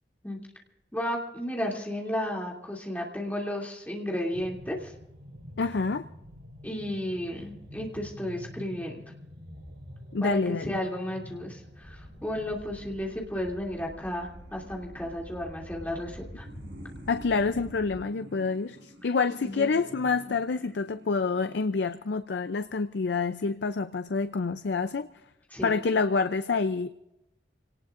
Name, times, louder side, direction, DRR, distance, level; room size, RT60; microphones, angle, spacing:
voice 1, 0.9-4.9 6.6-9.0 10.2-16.5 19.4-19.7 25.5-25.7, left 1 dB, 10° left, -2 dB, 2.7 m, -33 dB
sound 1, 4.3-21.7, equal, 85° right, 3.9 m, -48 dB
voice 2, 5.6-6.0 10.1-10.8 17.1-25.1 25.6-26.9, left 4 dB, 70° left, 11 dB, 0.5 m, -27 dB
sound 2, 11.8-17.9, equal, 55° left, 4.9 m, -47 dB
27.5 x 18.5 x 2.5 m, 0.90 s
head